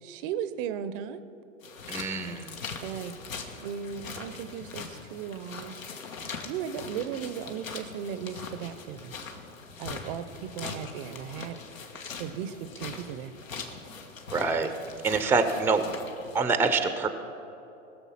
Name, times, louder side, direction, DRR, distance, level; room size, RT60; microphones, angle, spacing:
voice 1, 0.0-1.2 2.8-3.1 3.6-5.7 6.4-9.1 9.8-11.6 12.2-13.3, right 9 dB, 45° right, 13 dB, 0.7 m, -36 dB
sound 1, 1.6-16.4, left 5 dB, 80° left, 1.5 m, -41 dB
voice 2, 1.9-2.5 14.3-14.7 15.0-15.8 16.3-17.1, right 4 dB, 5° right, 9 dB, 0.6 m, -25 dB
19.5 x 6.9 x 5.7 m, 3.0 s
hypercardioid pair, 105°, 39 cm